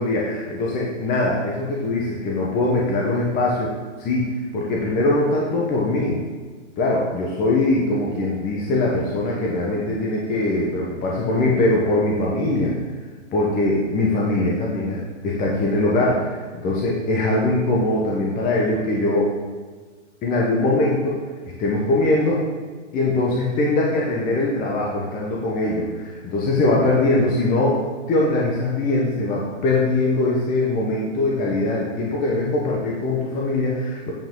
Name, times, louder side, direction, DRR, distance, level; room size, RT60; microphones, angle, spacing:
voice 1, 0.0-3.7 4.0-6.2 6.8-12.7 13.3-19.3 20.2-21.2 21.6-22.5 22.9-27.8 28.1-34.1, left 2 dB, 25° left, -3 dB, 1.2 m, -22 dB
9.0 x 4.9 x 3.8 m, 1.4 s
hypercardioid pair, 125°, 37 cm